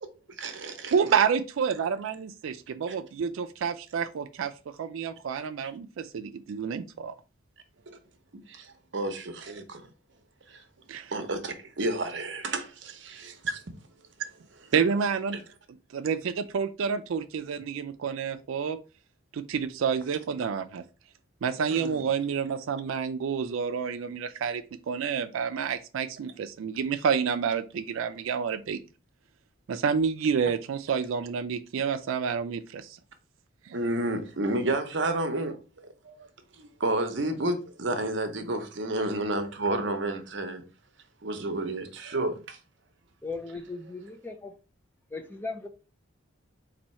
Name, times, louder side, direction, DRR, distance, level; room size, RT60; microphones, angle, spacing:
voice 1, 0.4-0.9 7.9-8.0 8.3-9.9 10.5-10.6 11.1-13.6 21.7-22.0 33.7-35.6 36.0-36.3 36.5-40.6 41.2-42.6, right 2 dB, 60° right, 0.7 m, -31 dB
voice 2, 0.9-4.5 4.8-7.1 10.9-11.1 14.2-14.3 14.7-15.4 15.9-18.8 19.3-20.8 21.4-28.8 29.7-33.0 33.7-33.8, right 6 dB, 75° right, 0.4 m, -29 dB
voice 3, 43.2-44.5 45.1-45.7, left 3 dB, 10° left, 0.4 m, -37 dB
4.2 x 2.7 x 4.2 m
head